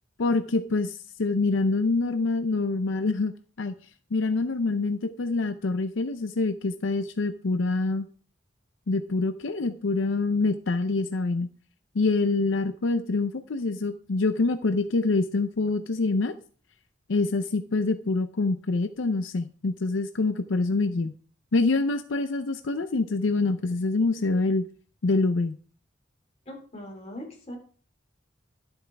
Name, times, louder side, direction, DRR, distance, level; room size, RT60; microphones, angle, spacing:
voice 1, 0.2-3.3 3.6-3.7 4.1-8.1 8.9-11.5 11.9-16.3 17.1-21.1 21.5-24.7 25.0-25.6, left 3 dB, 85° left, 9 dB, 0.6 m, -26 dB
voice 2, 26.4-27.6, left 1 dB, 35° left, 0 dB, 3.4 m, -40 dB
12.0 x 8.0 x 3.4 m, 0.43 s
head